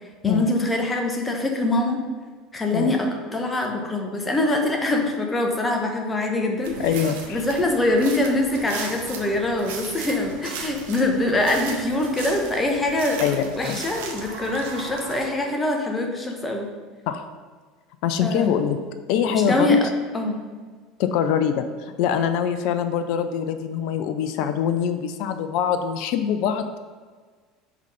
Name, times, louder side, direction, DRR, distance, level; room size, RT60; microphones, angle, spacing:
voice 1, 0.2-2.0 2.5-6.8 7.3-13.2 13.6-16.7 18.2-18.7 19.3-19.9 20.1-20.4, left 2 dB, 20° left, 2 dB, 1.2 m, -24 dB
sound 1, 6.6-15.3, right 5 dB, 70° right, 0.9 m, -37 dB
voice 2, 6.8-7.4 13.2-13.8 17.1-17.2 18.0-18.8 19.1-19.8 21.0-26.7, left 8 dB, 60° left, 9 dB, 0.4 m, -24 dB
5.1 x 3.9 x 5.3 m, 1.5 s
hypercardioid pair, 70°, 0 cm